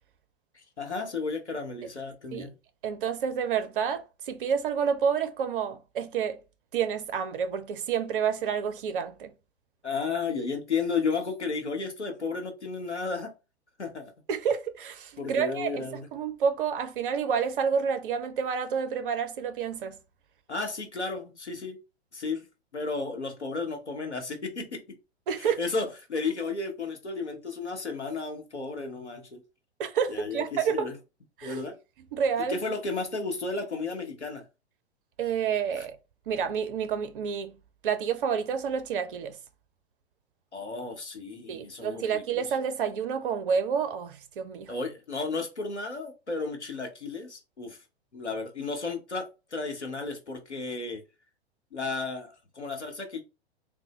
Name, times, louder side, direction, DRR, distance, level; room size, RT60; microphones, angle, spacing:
voice 1, 0.5-2.5 9.8-13.3 13.8-14.1 15.2-16.1 20.5-21.8 22.1-22.5 22.7-25.0 25.4-29.4 30.1-30.9 31.4-31.8 32.4-34.4 35.8-35.9 40.5-42.6 44.7-47.8 48.1-51.0 51.7-53.2, left 4 dB, 85° left, 0.9 m, -33 dB
voice 2, 2.8-6.4 6.7-9.3 14.3-20.0 25.3-25.6 29.8-30.9 31.4-31.6 32.1-32.6 35.2-36.0 36.3-37.6 37.8-39.4 41.5-44.7, right 7 dB, 50° right, 0.5 m, -29 dB
3.5 x 2.0 x 2.9 m
figure-of-eight pair, 100°, 33 cm